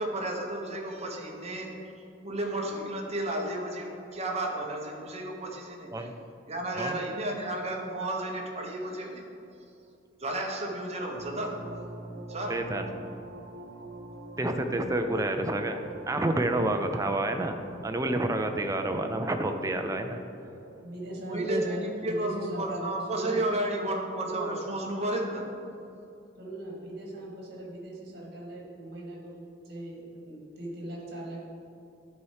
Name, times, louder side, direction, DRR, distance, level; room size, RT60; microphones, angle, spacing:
voice 1, 0.0-1.7 2.2-6.1 6.5-9.2 10.2-11.6 12.3-12.6 15.1-15.2 21.3-25.5, right 1 dB, 35° right, 0 dB, 1.0 m, -32 dB
sound 1, 11.1-23.3, right 2 dB, 70° right, 0.8 m, -46 dB
voice 2, 12.5-12.9 14.4-15.8 16.1-17.6 17.8-20.2 21.3-21.6, right 1 dB, 15° right, 6 dB, 0.5 m, -29 dB
voice 3, 20.8-23.4 24.2-24.6 26.4-29.3 29.6-31.4, right 1 dB, 55° right, -2 dB, 1.8 m, -39 dB
11.0 x 4.2 x 4.9 m, 2.7 s
head